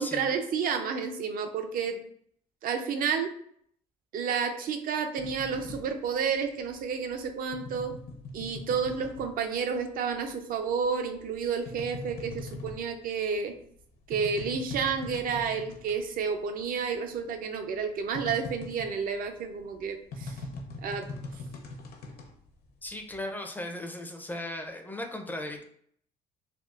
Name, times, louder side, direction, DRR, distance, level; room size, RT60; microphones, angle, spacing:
voice 1, 0.0-2.0 2.6-3.3 4.1-7.9 8.3-13.5 14.1-20.3 20.8-21.1, right 6 dB, 60° right, 6 dB, 0.5 m, -30 dB
sound 1, 5.2-9.9 10.2-16.1 16.4-16.5 16.7-23.2, left 2 dB, 65° left, 0.7 m, -42 dB
voice 2, 22.8-25.6, left 1 dB, 10° left, 3 dB, 0.4 m, -37 dB
3.5 x 2.3 x 2.4 m, 0.64 s
cardioid pair, 110°, 17 cm